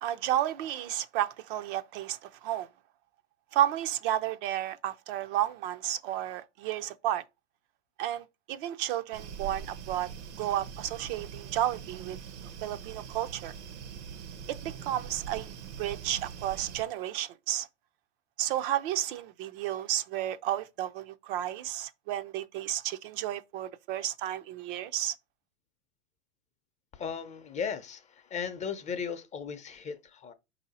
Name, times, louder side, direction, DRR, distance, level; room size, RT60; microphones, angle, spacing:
voice 1, 0.0-2.7 3.5-7.2 8.0-10.1 10.4-12.2 12.6-13.5 14.5-17.7 18.4-25.1, right 12 dB, 50° right, 0.5 m, -32 dB
sound 1, 9.1-16.8, right 7 dB, 75° right, 0.8 m, -43 dB
voice 2, 26.9-30.3, left 6 dB, 20° left, 0.5 m, -36 dB
4.6 x 2.8 x 4.0 m
hypercardioid pair, 120°, 34 cm